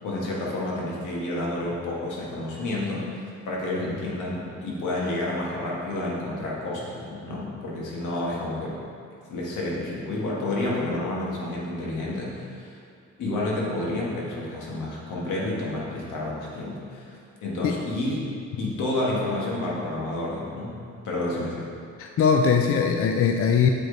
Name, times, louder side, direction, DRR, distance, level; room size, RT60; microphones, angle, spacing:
voice 1, 0.0-8.8 9.3-12.8 13.2-18.3 18.6-21.7, left 1 dB, 80° left, -4 dB, 1.7 m, -30 dB
voice 2, 22.0-23.7, left 6 dB, 50° left, 4 dB, 0.5 m, -21 dB
7.8 x 5.0 x 4.0 m, 2.4 s
cardioid pair, 90°, 30 cm